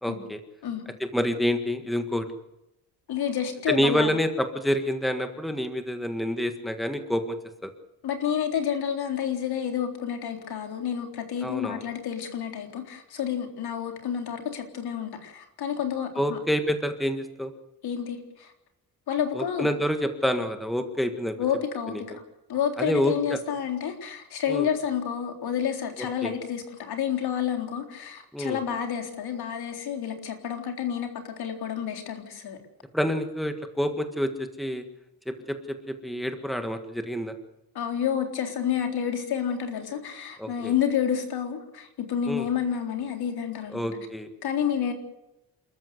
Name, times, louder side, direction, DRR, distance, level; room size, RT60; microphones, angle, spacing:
voice 1, 0.0-0.4 1.0-2.2 3.7-7.2 7.6-7.7 11.4-11.8 16.2-17.5 19.3-21.3 21.9-22.2 22.8-23.4 24.5-24.7 26.2-26.3 28.3-28.6 32.9-34.8 35.3-37.3 40.4-40.7 42.3-42.5 43.7-44.3, equal, ahead, 7 dB, 1.6 m, -28 dB
voice 2, 3.1-4.2 8.0-16.4 17.8-18.5 19.1-19.7 21.4-22.2 22.5-32.6 37.7-43.9 44.4-44.9, left 8 dB, 80° left, 5 dB, 3.9 m, -29 dB
28.0 x 14.0 x 8.0 m, 0.88 s
wide cardioid pair, 175°, 37 cm